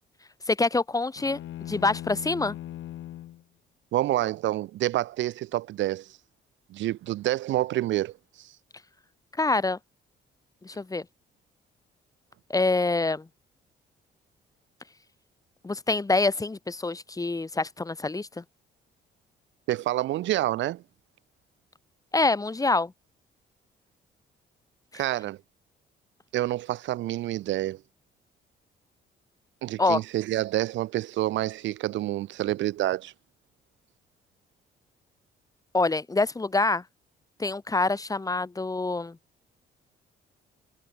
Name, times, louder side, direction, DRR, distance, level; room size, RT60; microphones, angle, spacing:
voice 1, 0.5-1.4 1.7-2.6 9.4-9.8 10.6-11.0 12.5-13.3 15.6-18.4 22.1-22.9 29.8-30.0 35.7-36.8 37.4-39.2, left 3 dB, 15° left, 1.1 m, -26 dB
sound 1, 1.2-3.4, left 13 dB, 75° left, 1.5 m, -39 dB
voice 2, 3.9-6.1 6.7-8.5 19.7-20.8 24.9-25.4 26.3-27.8 29.6-33.1, right 15 dB, 70° right, 0.5 m, -28 dB
cardioid pair, 90°, 20 cm